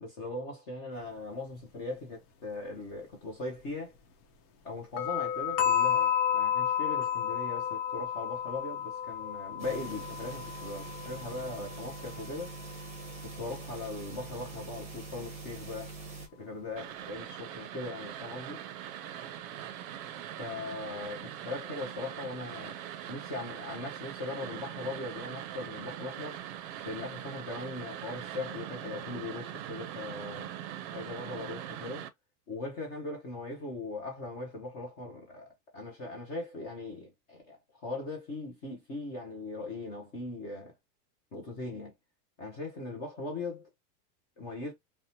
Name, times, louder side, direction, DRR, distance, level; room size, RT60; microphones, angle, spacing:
voice 1, 0.0-3.9 4.6-12.6 13.2-16.0 16.3-18.6 20.4-22.8 23.1-26.4 26.8-30.5 30.9-32.1 32.5-40.7 41.3-41.9 42.4-43.7 44.4-44.7, left 2 dB, 25° left, 0.4 m, -39 dB
sound 1, 5.0-12.8, left 9 dB, 70° left, 0.8 m, -31 dB
sound 2, 9.6-16.3, right 3 dB, 15° right, 0.7 m, -44 dB
sound 3, 16.8-32.1, right 11 dB, 55° right, 0.5 m, -42 dB
2.7 x 2.1 x 2.7 m
supercardioid pair, 150°, 49 cm